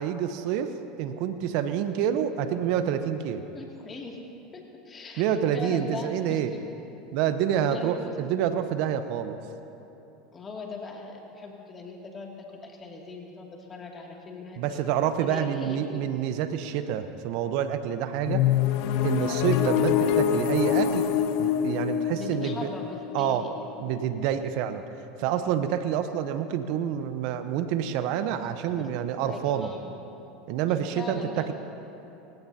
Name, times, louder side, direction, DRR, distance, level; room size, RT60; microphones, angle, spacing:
voice 1, 0.0-3.4 5.2-6.5 7.1-9.4 14.6-18.5 19.0-21.1 21.4-22.7 23.1-23.5 23.8-24.8 25.2-29.7 30.5-31.5, right 9 dB, 60° right, 9 dB, 0.9 m, -28 dB
voice 2, 3.5-4.2 4.5-5.2 5.5-6.6 7.6-8.4 10.3-16.1 22.1-23.5 28.6-28.9 29.2-29.9 30.9-31.5, left 3 dB, 30° left, -1 dB, 2.5 m, -40 dB
sound 1, 18.2-24.0, left 10 dB, 60° left, 0.8 m, -25 dB
28.0 x 16.0 x 2.9 m, 3.0 s
hypercardioid pair, 85°, 0 cm